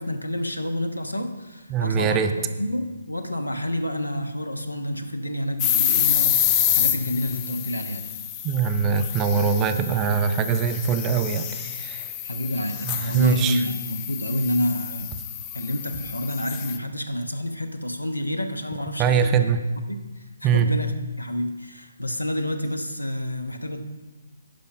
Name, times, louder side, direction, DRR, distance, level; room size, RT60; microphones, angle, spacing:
voice 1, 0.0-8.1 12.2-15.2 15.5-19.5 19.9-20.9 21.2-23.8, left 1 dB, 90° left, 6 dB, 1.1 m, -29 dB
voice 2, 1.7-2.3 8.4-12.1 12.8-13.6 19.0-19.6 20.4-20.7, right 6 dB, 20° right, 8 dB, 0.6 m, -22 dB
sound 1, 5.6-16.8, left 10 dB, 25° left, 0.6 m, -28 dB
10.5 x 5.2 x 5.9 m, 1.2 s
figure-of-eight pair, 140°, 0 cm